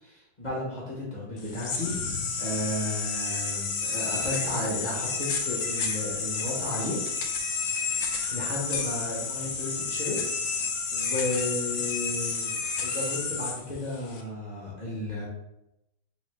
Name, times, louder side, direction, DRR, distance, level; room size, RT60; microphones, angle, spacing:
voice 1, 0.0-7.0 8.3-10.2 10.9-12.5 12.8-15.3, left 1 dB, 30° left, -5 dB, 0.8 m, -33 dB
sound 1, 1.4-14.2, left 5 dB, 80° left, 0.7 m, -31 dB
3.9 x 3.8 x 3.3 m, 0.87 s
omnidirectional pair, 2.2 m